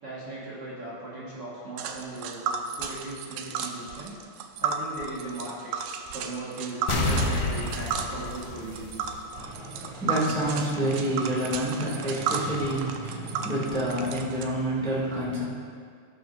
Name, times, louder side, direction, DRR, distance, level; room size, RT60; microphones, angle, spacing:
voice 1, 0.0-4.2 4.6-5.7 6.1-9.2, right 2 dB, 45° right, -8 dB, 2.2 m, -38 dB
Tick, 1.8-14.4, right 6 dB, 85° right, 2.5 m, -33 dB
sound 1, 6.9-9.5 9.8-9.9, left 2 dB, 75° left, 3.0 m, -29 dB
voice 2, 9.3-15.4, right 1 dB, ahead, -7 dB, 1.7 m, -28 dB
19.0 x 9.5 x 2.8 m, 2.1 s
omnidirectional pair, 4.7 m